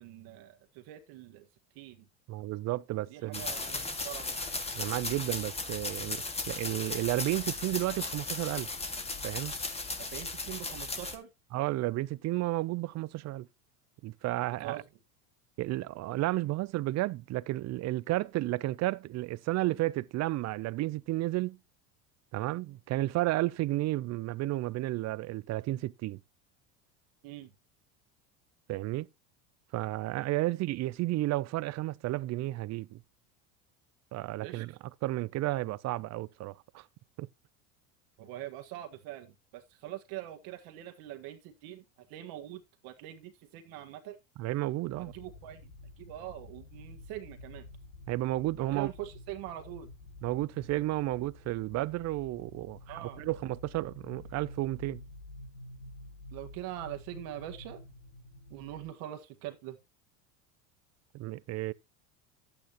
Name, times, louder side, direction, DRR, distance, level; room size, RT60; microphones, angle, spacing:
voice 1, 0.0-1.5 1.8-2.0 3.1-4.4 10.0-11.3 14.6-14.8 27.2-27.5 34.4-34.6 38.2-41.8 42.1-44.2 44.9-45.6 46.0-47.7 48.6-49.9 52.9-53.2 56.3-57.8 58.5-59.8, right 13 dB, 60° right, 1.6 m, -43 dB
voice 2, 2.3-3.5 4.7-8.7 9.2-9.5 11.5-13.5 14.0-14.8 15.6-21.6 22.3-26.2 28.7-29.1 29.7-33.0 34.1-34.7 35.0-36.8 37.2-37.3 44.4-45.1 48.1-48.9 50.2-55.0 61.1-61.7, right 17 dB, 40° right, 0.6 m, -32 dB
sound 1, 3.3-11.2, left 3 dB, 15° left, 1.9 m, -36 dB
sound 2, 44.9-58.9, left 2 dB, 90° left, 6.4 m, -50 dB
12.0 x 8.9 x 3.0 m
supercardioid pair, 110°, 40 cm